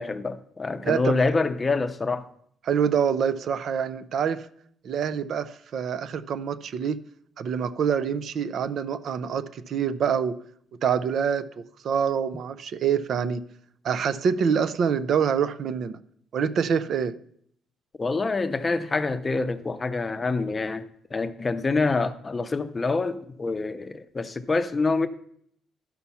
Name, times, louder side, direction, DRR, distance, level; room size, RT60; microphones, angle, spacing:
voice 1, 0.0-2.3 18.0-20.8 21.1-25.1, left 3 dB, 25° left, 0.6 m, -26 dB
voice 2, 0.8-1.3 2.6-4.5 4.8-7.0 7.4-10.4 10.8-13.4 13.8-15.9 16.3-17.1, right 7 dB, 55° right, 0.5 m, -26 dB
11.5 x 5.8 x 5.6 m
cardioid pair, 125°, 0 cm